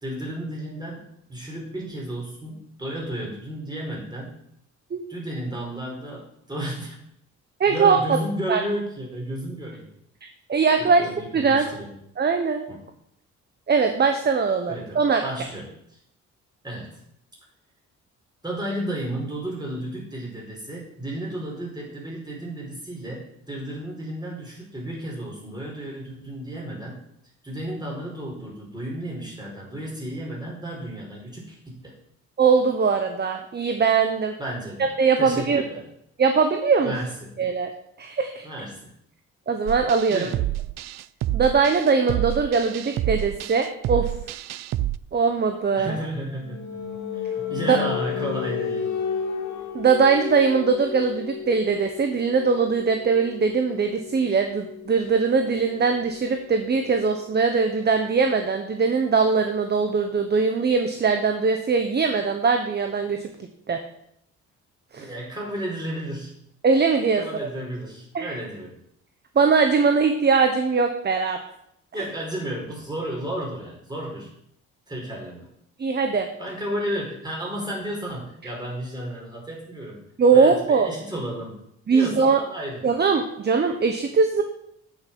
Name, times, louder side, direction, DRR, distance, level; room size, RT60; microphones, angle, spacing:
voice 1, 0.0-4.3 5.1-7.0 7.7-9.9 10.8-12.0 12.7-12.8 14.7-16.0 16.6-17.0 18.4-27.0 27.4-31.9 34.4-35.8 36.8-37.3 38.4-38.9 40.1-40.4 45.7-46.8 47.1-48.9 65.0-66.4 67.2-68.8 71.9-74.3 74.9-75.5 76.4-80.0 80.3-81.6 81.9-82.8, right 1 dB, 15° right, -3 dB, 4.9 m, -33 dB
voice 2, 7.6-8.2 8.5-8.6 10.5-11.0 11.3-11.7 12.2-12.6 13.7-15.2 32.4-34.3 35.0-35.6 36.2-36.9 37.4-37.7 38.0-38.5 39.5-40.3 41.3-44.1 45.1-45.9 47.7-47.9 49.7-63.2 63.7-63.8 64.9-65.1 66.6-67.2 68.1-68.4 69.3-71.4 75.8-76.3 80.2-80.9 81.9-82.4 82.8-84.4, right 5 dB, 35° right, 6 dB, 1.0 m, -21 dB
sound 1, 39.7-45.0, right 14 dB, 60° right, 0.4 m, -28 dB
sound 2, 45.6-57.2, left 7 dB, 70° left, 2.1 m, -33 dB
8.8 x 6.9 x 6.1 m, 0.75 s
cardioid pair, 90°, 30 cm